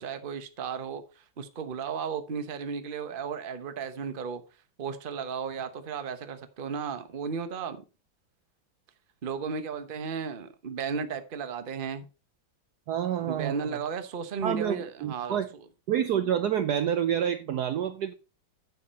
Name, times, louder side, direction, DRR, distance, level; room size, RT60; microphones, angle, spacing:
voice 1, 0.0-4.4 4.8-7.8 9.2-12.1 13.2-15.6, right 6 dB, 35° right, 0.9 m, -34 dB
voice 2, 12.9-13.8 14.4-15.5 15.9-18.1, right 9 dB, 70° right, 1.0 m, -28 dB
9.6 x 6.9 x 4.2 m
omnidirectional pair, 2.2 m